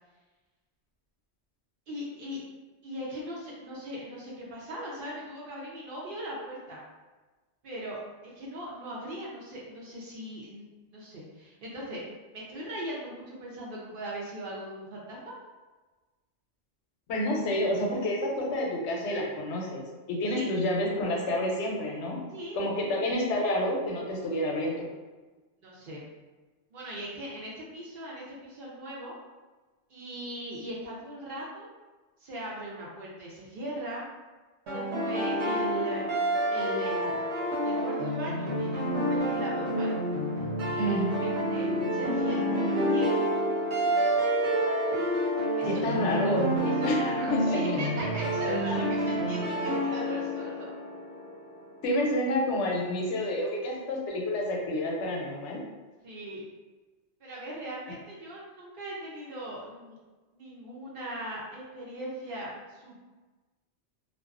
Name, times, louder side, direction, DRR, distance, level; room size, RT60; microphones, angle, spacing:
voice 1, 1.9-2.4 2.8-6.8 7.6-12.0 12.3-15.3 20.3-20.5 21.3-21.4 22.3-22.6 25.6-26.0 26.7-29.1 29.9-31.7 32.2-34.0 34.7-37.2 37.6-39.9 40.7-43.2 45.6-45.7 46.6-50.7 56.0-56.4 57.2-60.0 60.3-63.0, right 1 dB, 60° right, -5 dB, 0.7 m, -39 dB
voice 2, 17.1-19.8 20.1-22.3 22.5-24.9 40.8-41.2 45.6-47.0 47.3-47.8 51.8-55.6, left 1 dB, 85° left, -1 dB, 0.9 m, -29 dB
sound 1, 34.7-51.5, equal, 75° right, 1.0 m, -28 dB
2.3 x 2.2 x 2.4 m, 1.3 s
omnidirectional pair, 1.2 m